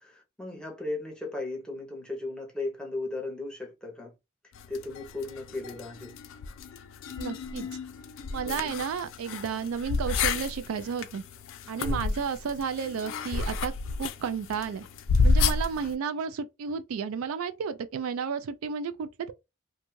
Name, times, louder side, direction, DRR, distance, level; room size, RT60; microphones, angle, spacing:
voice 1, 0.0-4.1 4.7-6.2 8.4-8.8 11.6-12.0, left 2 dB, 5° left, 0.6 m, -36 dB
sound 1, 4.6-15.9, left 4 dB, 65° left, 0.3 m, -31 dB
voice 2, 7.2-7.7 8.3-11.2 11.7-13.7 14.0-14.9 15.2-19.3, right 6 dB, 85° right, 0.3 m, -32 dB
2.6 x 2.3 x 3.0 m
head